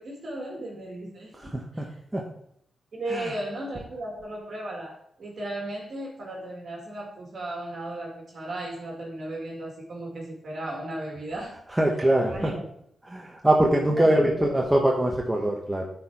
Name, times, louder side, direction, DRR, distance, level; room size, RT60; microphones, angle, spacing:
voice 1, 0.0-1.9 2.9-11.6 12.2-12.6 13.9-14.5, right 1 dB, 60° right, -2 dB, 2.1 m, -35 dB
voice 2, 1.3-1.9 2.1-2.2 3.1-3.3 11.7-12.5 13.0-15.9, right 1 dB, 15° right, -1 dB, 1.1 m, -23 dB
9.3 x 4.5 x 4.7 m, 0.70 s
cardioid pair, 80°, 0 cm